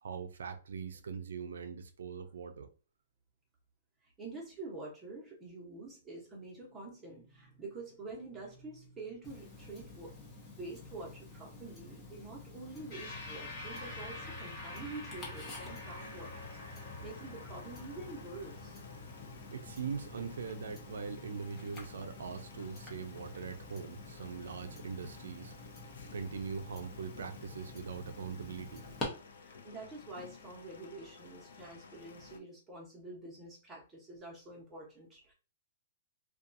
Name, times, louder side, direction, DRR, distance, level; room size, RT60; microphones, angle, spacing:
voice 1, 0.0-2.7 19.5-25.7 26.1-28.8, right 6 dB, 90° right, 0.4 m, -41 dB
voice 2, 4.2-10.1 10.5-16.3 16.7-18.8 29.4-35.3, right 3 dB, 10° right, 1.0 m, -47 dB
Tick-tock, 9.2-29.0, left 2 dB, 15° left, 0.8 m, -49 dB
sound 1, 12.9-21.6, left 2 dB, 35° left, 1.1 m, -48 dB
sound 2, 15.7-32.4, left 5 dB, 80° left, 0.4 m, -55 dB
2.6 x 2.3 x 2.6 m
hypercardioid pair, 155°, 0 cm